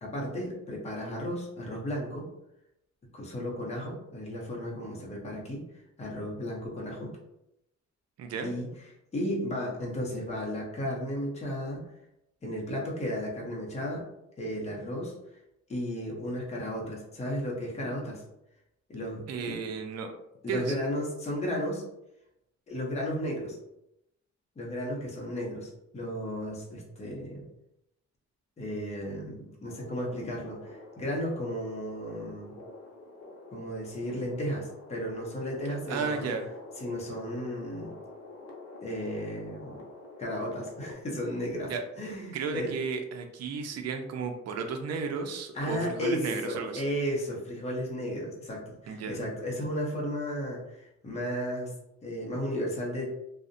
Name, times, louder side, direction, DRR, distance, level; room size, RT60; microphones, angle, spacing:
voice 1, 0.0-2.3 3.1-7.2 8.4-8.7 9.1-11.8 12.4-14.1 14.4-15.1 15.7-18.2 18.9-19.6 20.4-21.8 22.7-23.6 24.6-27.5 28.6-32.5 33.5-36.3 36.8-37.9 38.8-39.8 40.2-42.8 45.5-51.7 52.0-53.1, equal, 20° left, -2 dB, 0.6 m, -34 dB
voice 2, 8.2-8.5 19.3-20.1 20.5-20.7 35.9-36.5 41.7-41.8 42.3-46.8 48.9-49.2, right 5 dB, 60° right, 5 dB, 0.4 m, -33 dB
sound 1, 29.6-40.9, left 2 dB, 60° left, 0.6 m, -47 dB
2.6 x 2.0 x 2.5 m, 0.84 s
cardioid pair, 135°, 29 cm